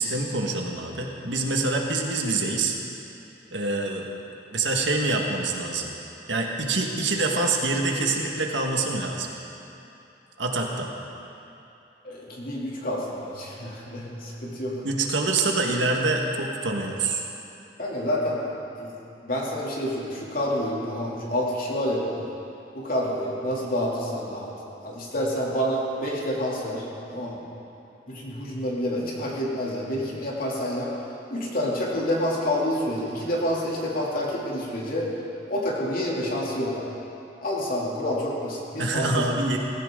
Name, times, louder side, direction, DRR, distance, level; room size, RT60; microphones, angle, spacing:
voice 1, 0.0-2.8 3.5-4.1 4.5-5.9 6.3-9.3 10.4-10.9 14.8-17.2 38.8-39.6, right 3 dB, 80° right, 1 dB, 1.7 m, -25 dB
voice 2, 12.0-14.8 16.8-16.9 17.8-18.9 19.2-22.3 22.7-24.5 24.8-27.4 28.1-30.9 31.3-35.1 35.5-36.9 37.4-39.3, equal, 50° left, -4 dB, 2.9 m, -28 dB
18.0 x 16.0 x 3.8 m, 2.8 s
head